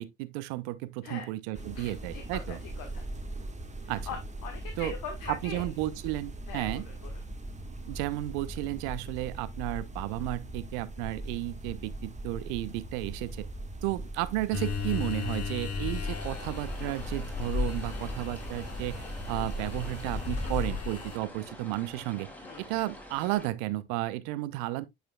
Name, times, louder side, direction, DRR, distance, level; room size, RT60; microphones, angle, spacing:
voice 1, 0.0-2.6 3.9-4.1 4.8-4.9 5.3-6.9 7.9-13.4 13.8-22.3 22.6-24.9, right 17 dB, 75° right, 0.7 m, -33 dB
sound 1, 1.5-20.7, right 1 dB, 20° right, 1.5 m, -40 dB
voice 2, 1.7-3.0 3.8-4.2 4.4-5.7 6.5-7.1 17.9-18.3 22.4-22.6, left 6 dB, 70° left, 1.2 m, -42 dB
sound 2, 14.5-21.2, left 5 dB, 40° left, 1.8 m, -35 dB
sound 3, 16.0-23.5, equal, 5° left, 2.6 m, -46 dB
9.0 x 5.0 x 2.2 m
hypercardioid pair, 50°, 35 cm